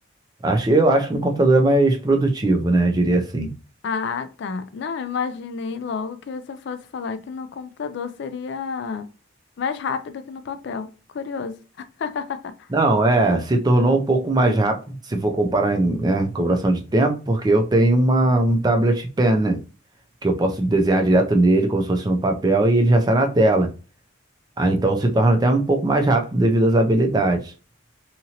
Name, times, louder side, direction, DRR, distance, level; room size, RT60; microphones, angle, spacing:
voice 1, 0.4-3.5 12.7-14.8 15.1-19.6 20.2-23.7 24.6-27.5, right 2 dB, 20° right, 0.4 m, -19 dB
voice 2, 3.8-9.1 9.6-12.5, left 5 dB, 55° left, 0.3 m, -30 dB
2.8 x 2.5 x 2.8 m
head